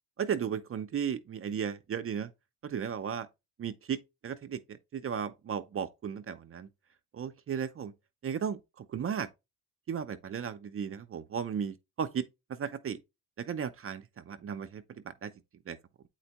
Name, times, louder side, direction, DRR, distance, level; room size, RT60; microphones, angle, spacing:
voice 1, 0.2-2.3 2.6-3.3 3.6-6.7 7.1-7.9 8.2-9.3 9.9-12.3 12.6-13.0 13.4-14.8 15.2-15.3 15.7-15.8, right 7 dB, 35° right, 0.6 m, -35 dB
7.9 x 4.5 x 2.9 m
cardioid pair, 95°, 40 cm